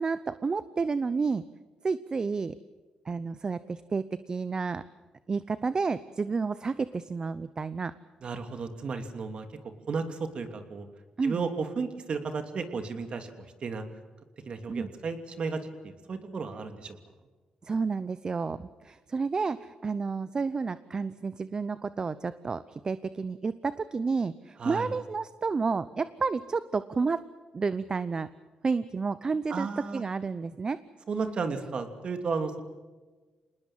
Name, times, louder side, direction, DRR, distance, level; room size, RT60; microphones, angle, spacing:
voice 1, 0.0-1.4 1.8-2.5 3.1-4.8 5.3-7.9 11.2-11.4 14.7-14.9 17.6-27.2 27.5-28.3 28.6-29.7 29.9-30.8, right 4 dB, 35° right, 15 dB, 0.8 m, -30 dB
voice 2, 8.2-9.5 9.9-10.9 11.2-13.3 13.6-13.8 14.5-17.0 24.6-24.9 29.5-30.0 31.1-32.6, right 4 dB, 50° right, 7 dB, 2.9 m, -33 dB
27.0 x 20.0 x 7.5 m, 1.3 s
cardioid pair, 90°, 2 cm